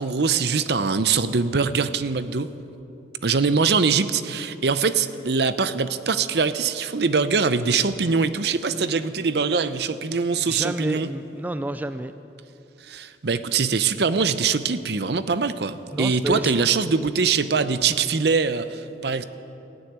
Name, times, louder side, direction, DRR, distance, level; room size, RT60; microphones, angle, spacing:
voice 1, 0.0-2.5 3.2-11.1 12.8-19.2, right 5 dB, 60° right, 12 dB, 0.6 m, -23 dB
voice 2, 10.4-12.1 15.9-16.9, right 1 dB, 10° right, 10 dB, 0.3 m, -30 dB
15.0 x 9.8 x 9.4 m, 2.8 s
head